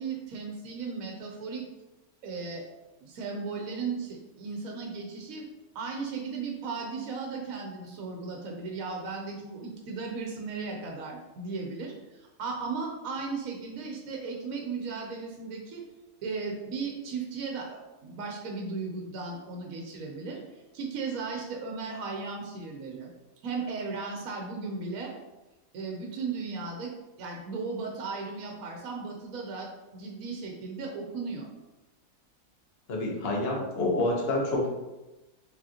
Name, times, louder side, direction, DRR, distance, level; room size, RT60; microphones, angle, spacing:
voice 1, 0.0-1.6 2.2-2.6 3.0-5.5 5.7-15.8 16.2-20.4 20.7-23.1 23.4-25.1 25.7-26.9 27.2-31.5, right 4 dB, 70° right, 1 dB, 1.2 m, -36 dB
voice 2, 32.9-34.7, left 2 dB, 45° left, -2 dB, 1.2 m, -27 dB
5.0 x 3.7 x 2.8 m, 1.0 s
omnidirectional pair, 1.5 m